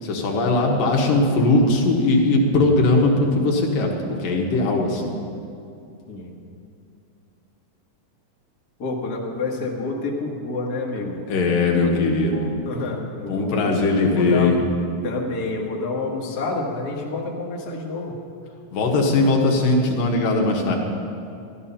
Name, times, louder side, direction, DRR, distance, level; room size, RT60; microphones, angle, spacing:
voice 1, 0.0-5.1 11.3-12.5 13.3-14.6 18.7-20.8, left 2 dB, 75° left, 0 dB, 3.1 m, -19 dB
voice 2, 8.8-14.6 15.0-18.2, left 3 dB, 40° left, -2 dB, 1.5 m, -29 dB
14.5 x 12.0 x 5.7 m, 2.6 s
omnidirectional pair, 4.0 m